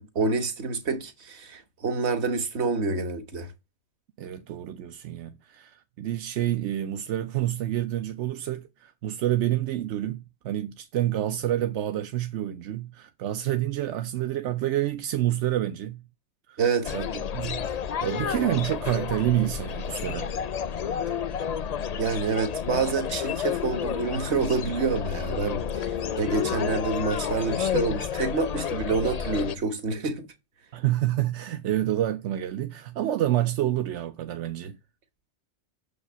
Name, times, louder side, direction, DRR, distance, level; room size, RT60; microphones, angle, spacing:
voice 1, 0.0-3.5 16.6-16.9 22.0-30.3, right 4 dB, 70° right, 1.5 m, -27 dB
voice 2, 4.2-16.0 16.5-16.6 16.9-20.3 30.7-34.8, right 13 dB, 90° right, 0.9 m, -28 dB
sound 1, 16.8-29.6, left 8 dB, 50° left, 0.5 m, -30 dB
6.7 x 5.5 x 6.8 m
omnidirectional pair, 1.2 m